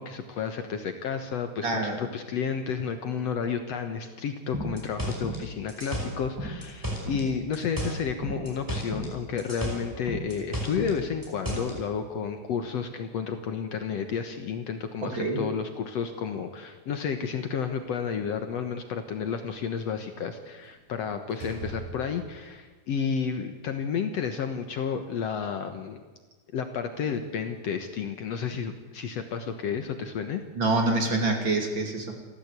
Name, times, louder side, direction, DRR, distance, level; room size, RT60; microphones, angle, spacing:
voice 1, 0.0-26.0 26.5-30.4, left 6 dB, 60° left, 7 dB, 2.1 m, -31 dB
voice 2, 1.6-2.0 15.0-15.4 30.6-32.1, right 2 dB, 40° right, 4 dB, 3.0 m, -26 dB
sound 1, 4.5-7.3 7.5-9.1 9.4-11.8, equal, 5° right, 5.1 m, -33 dB
Slam, 17.5-18.5 20.6-20.9 21.3-22.5, right 3 dB, 75° right, 7.4 m, -42 dB
29.0 x 14.0 x 8.3 m, 1.4 s
omnidirectional pair, 3.7 m